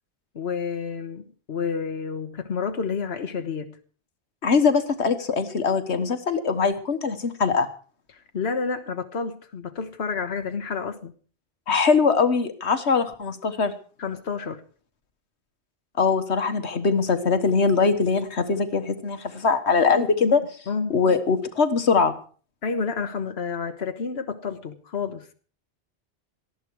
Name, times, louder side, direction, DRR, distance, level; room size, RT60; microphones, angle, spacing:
voice 1, 0.3-3.8 8.1-11.1 14.0-14.6 19.9-20.4 20.7-21.0 22.6-25.3, left 5 dB, 70° left, 1.5 m, -30 dB
voice 2, 4.4-7.7 11.7-13.7 16.0-20.4 20.9-22.1, left 5 dB, 85° left, 1.7 m, -22 dB
18.5 x 14.0 x 4.8 m
omnidirectional pair, 1.1 m